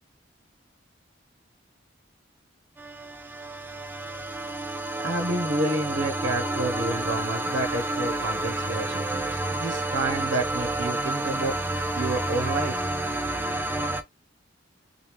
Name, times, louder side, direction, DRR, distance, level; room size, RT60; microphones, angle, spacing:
sound 1, 2.8-14.0, right 2 dB, 10° right, 0.3 m, -30 dB
voice 1, 5.0-11.5 12.0-12.7, right 2 dB, 75° right, 0.7 m, -29 dB
2.9 x 2.2 x 3.3 m
head